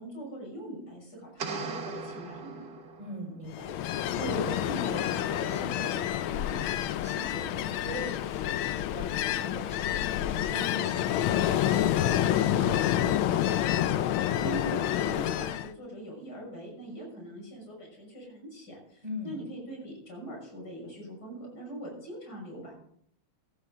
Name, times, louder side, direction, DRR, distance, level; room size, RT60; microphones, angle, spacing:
voice 1, 0.0-2.7 14.4-22.7, right 1 dB, 50° left, -2 dB, 7.1 m, -42 dB
sound 1, 1.4-3.3, right 4 dB, 50° right, 1.7 m, -38 dB
voice 2, 3.0-13.6 19.0-19.4, equal, 15° right, -1 dB, 5.4 m, -41 dB
Ocean, 3.5-15.7, left 11 dB, 75° left, 1.4 m, -28 dB
16.5 x 12.5 x 3.9 m, 0.67 s
omnidirectional pair, 2.3 m